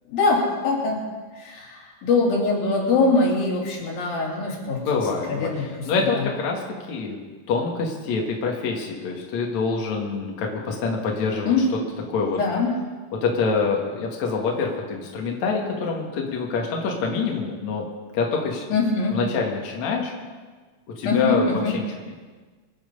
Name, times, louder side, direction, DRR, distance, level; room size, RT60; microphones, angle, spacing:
voice 1, 0.1-1.0 1.4-4.8 5.2-6.3 11.5-11.6 12.3-12.7 18.7-19.2 21.1-21.7, left 3 dB, 90° left, -2 dB, 4.7 m, -23 dB
voice 2, 4.8-6.6 6.9-7.2 7.5-11.5 12.1-12.4 13.2-17.8 18.1-18.8 19.1-20.1 21.0-21.9, left 4 dB, 55° left, 0 dB, 3.0 m, -26 dB
25.0 x 9.3 x 5.4 m, 1.4 s
omnidirectional pair, 4.0 m